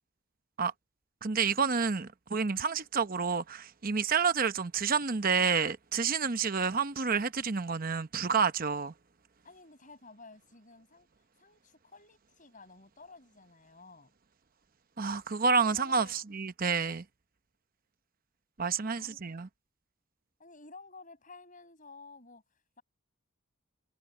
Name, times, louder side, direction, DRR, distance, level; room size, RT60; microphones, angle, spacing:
voice 1, 1.2-8.9 15.0-17.0 18.6-19.5, right 5 dB, 40° right, 0.8 m, -29 dB
voice 2, 9.4-11.1 11.4-14.1 15.6-16.3 19.0-19.3 20.4-22.8, left 3 dB, 35° left, 7.2 m, -53 dB
head